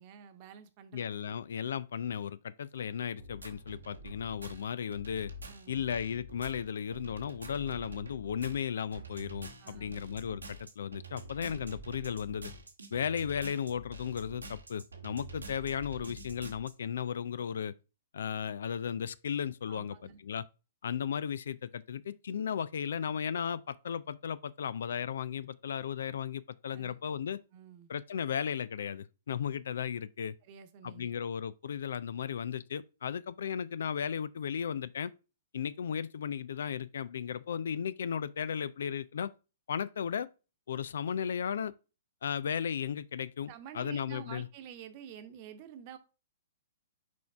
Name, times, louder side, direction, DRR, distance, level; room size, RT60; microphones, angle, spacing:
voice 1, 0.0-1.4 5.4-5.8 9.6-10.0 19.7-20.2 26.7-27.0 27.5-27.9 30.4-31.1 43.5-46.0, right 9 dB, 40° right, 1.1 m, -49 dB
voice 2, 0.9-5.3 5.7-12.5 12.9-17.7 18.1-20.5 20.8-27.4 27.9-30.3 30.8-35.1 35.5-39.3 39.7-40.3 40.7-41.7 42.2-44.5, left 8 dB, 65° left, 0.4 m, -35 dB
sound 1, 3.2-16.7, right 1 dB, 90° right, 1.4 m, -47 dB
6.2 x 4.5 x 3.5 m
figure-of-eight pair, 120°, 0 cm